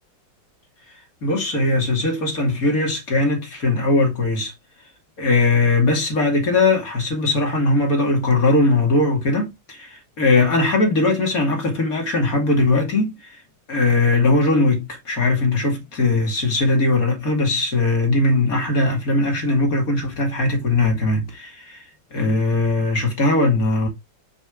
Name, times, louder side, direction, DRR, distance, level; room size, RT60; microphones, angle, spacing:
voice 1, 1.2-4.5 5.2-13.4 13.7-21.8 22.1-23.9, left 2 dB, 45° left, 2.8 m, -20 dB
6.7 x 4.9 x 3.6 m
omnidirectional pair, 2.2 m